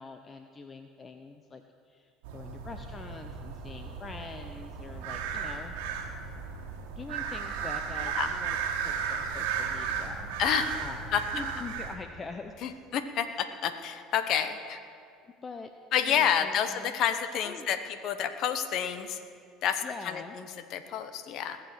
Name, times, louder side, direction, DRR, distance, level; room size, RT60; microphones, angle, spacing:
voice 1, 0.0-5.8 6.8-8.6 8.8-12.8 13.2-13.6 15.4-15.7 16.0-17.0 17.4-17.7 19.8-20.4, left 4 dB, 30° left, 7 dB, 0.7 m, -44 dB
sound 1, 2.2-12.0, right 6 dB, 80° right, 1.4 m, -35 dB
voice 2, 10.4-10.8 11.1-11.2 12.6-14.8 15.9-17.8 18.0-19.2 19.6-20.5 20.7-21.6, left 8 dB, 60° left, 10 dB, 1.0 m, -29 dB
20.5 x 7.0 x 6.2 m, 2.5 s
supercardioid pair, 90°, 0 cm